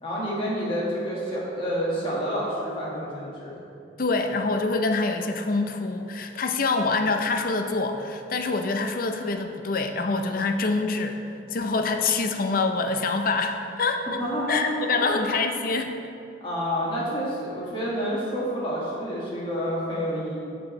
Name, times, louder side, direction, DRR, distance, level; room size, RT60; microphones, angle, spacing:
voice 1, 0.0-3.6 14.2-15.1 16.4-20.4, equal, 30° left, -6 dB, 1.7 m, -28 dB
voice 2, 4.0-11.2 11.5-14.2 14.5-15.9, left 3 dB, 50° left, 5 dB, 0.6 m, -25 dB
13.5 x 4.6 x 3.1 m, 2.6 s
head